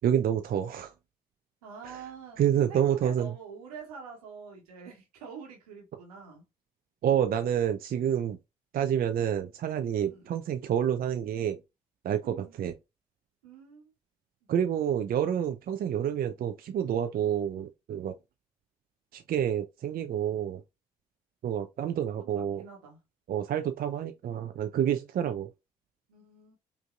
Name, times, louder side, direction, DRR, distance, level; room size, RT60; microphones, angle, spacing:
voice 1, 0.0-0.9 1.8-2.0 2.4-3.3 7.0-8.4 8.7-11.6 12.0-12.7 14.5-18.1 19.1-20.6 21.4-22.6 23.3-25.5, right 9 dB, 50° right, 0.5 m, -28 dB
voice 2, 1.6-2.4 2.7-6.4 10.0-10.3 12.2-12.6 13.4-13.9 22.2-23.0 26.1-26.6, right 6 dB, 80° right, 1.3 m, -46 dB
5.1 x 2.7 x 2.4 m
figure-of-eight pair, 40°, 19 cm